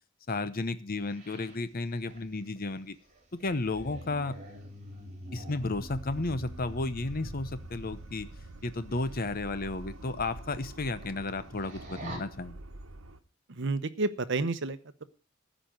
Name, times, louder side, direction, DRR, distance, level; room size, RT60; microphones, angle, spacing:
voice 1, 0.3-3.0 3.4-4.3 5.3-8.3 8.6-12.5, left 2 dB, 45° left, 12 dB, 0.9 m, -33 dB
sound 1, 1.0-7.8 8.9-9.3 9.6-9.7 10.2-10.3 10.6-11.2 11.5-12.2, equal, 40° right, 3.8 m, -46 dB
sound 2, 5.6-13.2, right 2 dB, 85° right, 1.1 m, -46 dB
voice 2, 13.5-15.0, right 3 dB, 65° right, 12 dB, 0.9 m, -31 dB
14.5 x 5.1 x 9.0 m, 0.40 s
head